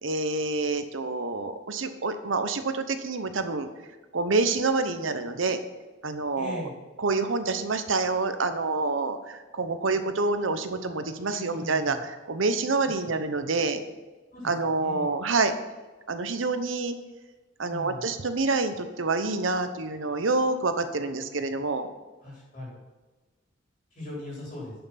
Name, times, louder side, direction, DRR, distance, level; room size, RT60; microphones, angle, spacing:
voice 1, 0.0-3.7 4.1-5.6 6.0-6.7 7.0-13.8 14.4-15.5 16.1-16.9 17.6-21.9, right 3 dB, 85° right, 9 dB, 0.9 m, -27 dB
voice 2, 6.3-6.7 11.2-12.0 12.8-13.0 14.3-14.5 14.8-15.1 17.7-18.0 22.2-22.8 23.9-24.7, left 2 dB, 40° left, -4 dB, 3.1 m, -39 dB
11.0 x 5.8 x 5.8 m, 1.2 s
head